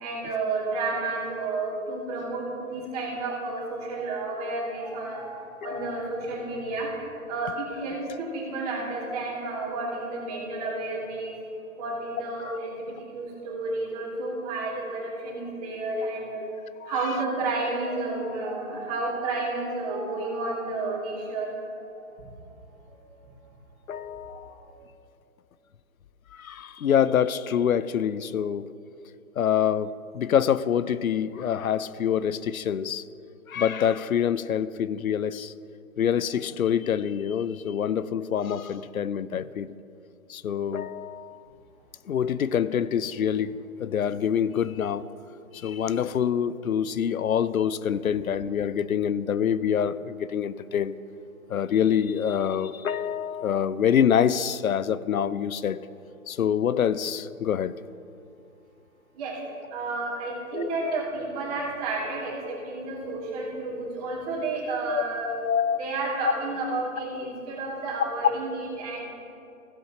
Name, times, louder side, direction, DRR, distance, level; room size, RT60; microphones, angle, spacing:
voice 1, 0.0-7.0 7.3-11.4 11.8-16.4 16.8-22.5 22.9-23.1 24.2-24.8 59.1-59.4 59.7-65.4 65.8-69.0, right 3 dB, 25° right, 2.6 m, -31 dB
voice 2, 5.6-6.0 12.5-12.6 16.4-16.5 16.8-16.9 23.9-24.5 26.3-28.7 29.4-33.1 33.5-35.5 36.0-39.7 40.3-41.4 42.1-45.1 45.5-50.9 51.5-55.8 56.3-57.7 60.5-61.0 64.9-65.9, left 8 dB, 75° left, 0.6 m, -26 dB
16.0 x 8.0 x 2.9 m
figure-of-eight pair, 145°, 42 cm